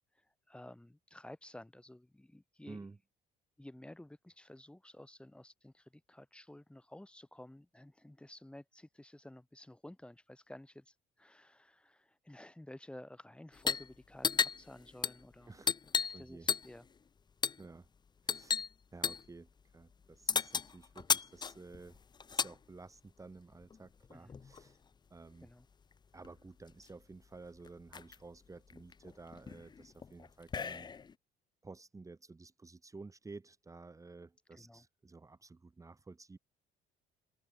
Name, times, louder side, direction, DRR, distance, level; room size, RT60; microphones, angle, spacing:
voice 1, 0.1-2.8 3.6-15.5 15.9-16.9 24.1-24.4 25.4-25.7 34.5-34.9, left 1 dB, 5° left, 5.6 m, -53 dB
voice 2, 2.6-3.0 15.5-15.7 16.1-16.5 17.6-17.9 18.2-22.0 22.3-24.8 25.1-25.5 26.1-30.9 31.6-36.4, right 3 dB, 20° right, 3.6 m, -53 dB
sound 1, 13.5-13.9 14.2-16.2 16.5-16.9 17.4-17.7 18.3-18.7 19.0-19.3 20.3-22.6 23.6-24.7 25.9-26.0 26.2-26.9 27.3-27.4 27.6-28.2 28.7-31.1, left 6 dB, 25° left, 0.7 m, -35 dB
cardioid pair, 110°, 17 cm